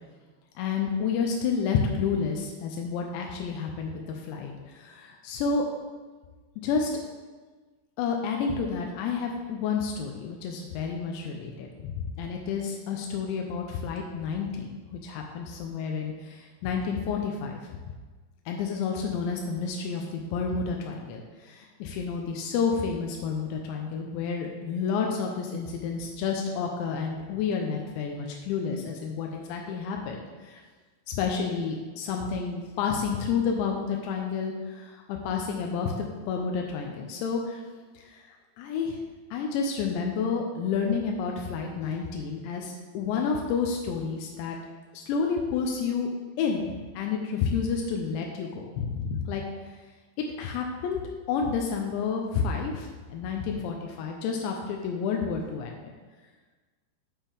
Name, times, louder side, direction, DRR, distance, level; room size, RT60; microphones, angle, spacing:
voice 1, 0.6-3.9 4.3-4.5 4.8-5.6 6.6-6.9 8.0-11.7 12.0-17.6 18.5-30.6 31.1-35.9 36.3-37.6 38.6-39.0 39.3-44.6 44.9-46.1 46.4-46.7 47.0-49.4 50.4-51.0 51.3-55.9, left 5 dB, 85° left, 1 dB, 2.9 m, -30 dB
7.3 x 5.7 x 3.5 m, 1.4 s
omnidirectional pair, 5.0 m